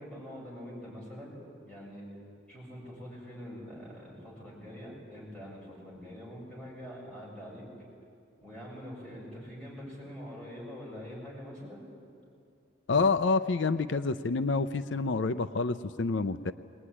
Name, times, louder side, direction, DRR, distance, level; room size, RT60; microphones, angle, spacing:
voice 1, 0.0-1.4 1.6-2.1 2.5-7.7 8.4-11.8, equal, 5° left, -6 dB, 7.8 m, -44 dB
voice 2, 12.9-16.5, left 4 dB, 75° left, 11 dB, 0.5 m, -28 dB
21.0 x 20.0 x 9.9 m, 2.4 s
head